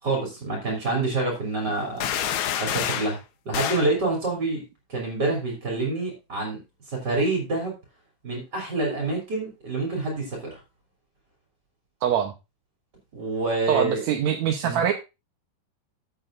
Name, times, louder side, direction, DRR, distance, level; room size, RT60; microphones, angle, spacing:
voice 1, 0.0-2.1 2.6-3.2 3.4-4.6 4.9-6.6 6.9-7.7 8.2-10.6 13.1-14.0 14.6-14.8, right 2 dB, 30° right, -1 dB, 3.5 m, -27 dB
sound 1, 2.0-3.2 3.5-3.9, left 10 dB, 70° left, 1.8 m, -27 dB
voice 2, 12.0-12.3 13.7-14.9, right 9 dB, 70° right, 4 dB, 1.8 m, -23 dB
14.5 x 7.9 x 2.6 m, 0.26 s
omnidirectional pair, 4.3 m